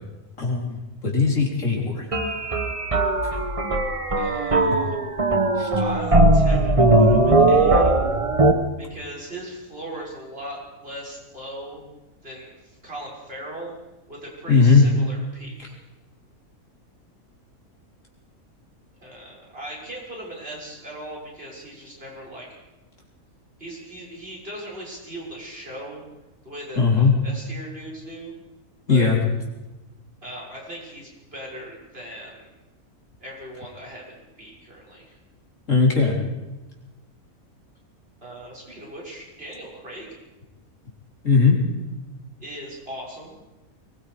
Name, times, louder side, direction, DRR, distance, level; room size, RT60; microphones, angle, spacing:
voice 1, 0.4-2.1 5.6-5.7 14.5-14.9 26.8-27.1 28.9-29.2 35.7-36.2 41.2-41.6, left 4 dB, 55° left, -1 dB, 4.4 m, -18 dB
sound 1, 2.1-8.5, right 2 dB, 25° right, 1.2 m, -19 dB
voice 2, 4.1-4.9 5.8-7.9 8.8-11.8 12.2-13.7 14.1-15.7 19.0-22.5 23.6-26.0 26.4-28.3 28.9-29.1 30.2-32.5 33.2-35.2 38.2-40.1 42.4-43.4, right 1 dB, 40° right, -4 dB, 6.7 m, -38 dB
24.0 x 21.5 x 5.0 m, 1.1 s
omnidirectional pair, 1.6 m